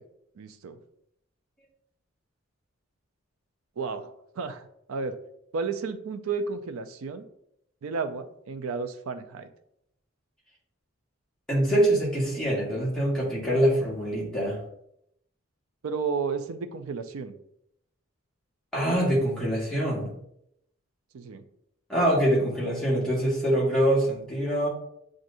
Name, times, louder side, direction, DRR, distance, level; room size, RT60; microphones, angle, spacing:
voice 1, 0.4-0.8 3.8-5.2 5.5-7.2 7.8-9.5 15.8-17.3 21.1-21.4, right 5 dB, 85° right, 10 dB, 0.4 m, -32 dB
voice 2, 11.5-14.6 18.7-20.1 21.9-24.7, right 1 dB, 5° left, -7 dB, 1.4 m, -24 dB
7.4 x 2.5 x 2.6 m, 0.76 s
head